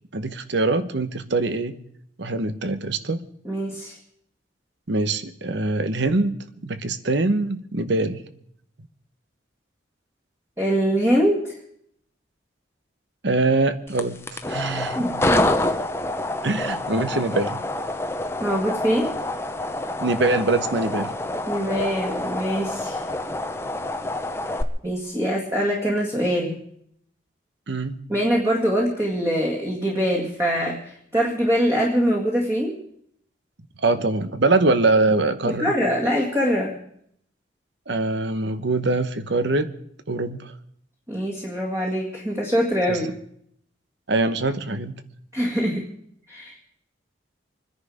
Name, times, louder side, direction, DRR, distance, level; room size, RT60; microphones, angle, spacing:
voice 1, 0.1-1.8 2.2-3.3 4.9-8.2 13.2-15.1 16.4-17.6 20.0-21.1 27.7-28.0 33.8-35.7 37.9-39.7 40.1-40.5 42.9-43.0 44.1-44.9, right 2 dB, 65° right, 12 dB, 1.0 m, -23 dB
voice 2, 3.4-4.0 10.6-11.5 14.9-15.5 18.4-19.1 21.5-23.0 24.8-26.6 28.1-32.8 35.5-36.8 41.1-43.1 45.3-45.8 46.3-46.6, equal, 15° right, -2 dB, 2.1 m, -23 dB
sound 1, 13.9-24.6, left 2 dB, 15° left, 0.8 m, -27 dB
24.5 x 10.5 x 5.0 m, 0.69 s
head